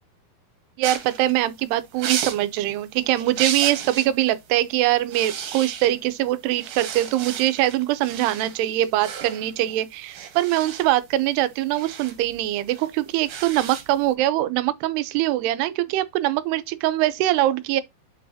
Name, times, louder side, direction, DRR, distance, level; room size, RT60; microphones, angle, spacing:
sound 1, 0.8-4.2 4.5-4.7 5.0-6.2 6.5-14.1, right 8 dB, 70° right, 3.2 m, -34 dB
voice 1, 0.8-17.8, right 14 dB, 90° right, 2.8 m, -23 dB
7.9 x 5.5 x 2.7 m
omnidirectional pair, 4.6 m